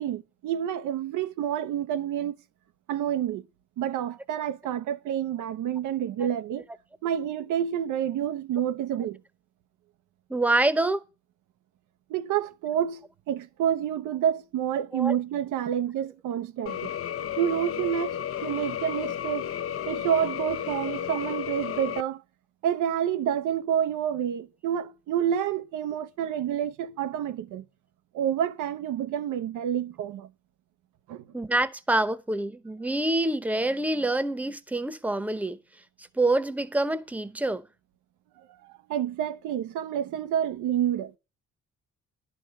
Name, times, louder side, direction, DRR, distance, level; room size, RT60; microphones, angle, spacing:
voice 1, 0.0-2.4 2.9-3.4 3.8-6.7 7.0-9.2 12.1-16.9 17.4-19.5 19.9-22.2 22.6-27.6 28.1-30.3 31.1-31.2 38.4-41.2, right 9 dB, 90° right, 0.9 m, -28 dB
voice 2, 10.3-11.0 14.9-15.2 31.3-35.6 36.0-37.7, right 2 dB, 5° right, 0.9 m, -26 dB
sound 1, 16.7-22.0, left 10 dB, 50° left, 0.6 m, -33 dB
11.0 x 5.2 x 7.5 m
cardioid pair, 90°, 30 cm